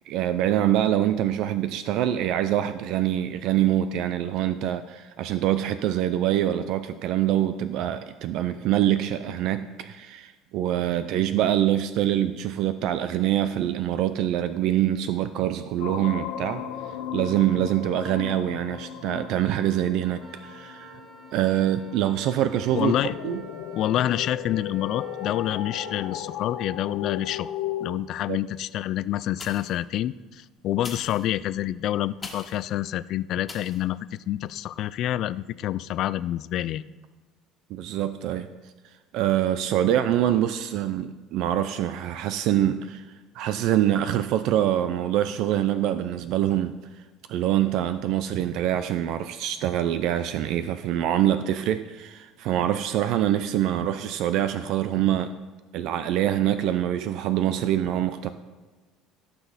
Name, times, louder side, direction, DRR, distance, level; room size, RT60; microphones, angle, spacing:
voice 1, 0.1-16.6 17.1-20.9 21.3-22.9 23.2-23.4 28.3-28.4 37.7-38.5 39.1-43.0 43.3-46.8 47.3-55.3 55.7-58.3, right 11 dB, 65° right, 11 dB, 0.4 m, -25 dB
sound 1, 15.8-27.9, left 10 dB, 85° left, 0.9 m, -36 dB
Wind instrument woodwind instrument, 20.2-26.3, right 4 dB, 25° right, 2.2 m, -49 dB
voice 2, 22.7-23.1 23.8-27.5 27.8-36.8, left 13 dB, 55° left, 17 dB, 0.3 m, -27 dB
sound 2, 29.4-29.9 30.7-32.7 33.5-33.8 34.4-34.5, left 4 dB, 20° left, 1.7 m, -42 dB
16.5 x 6.1 x 4.1 m, 1.3 s
cardioid pair, 135°, 0 cm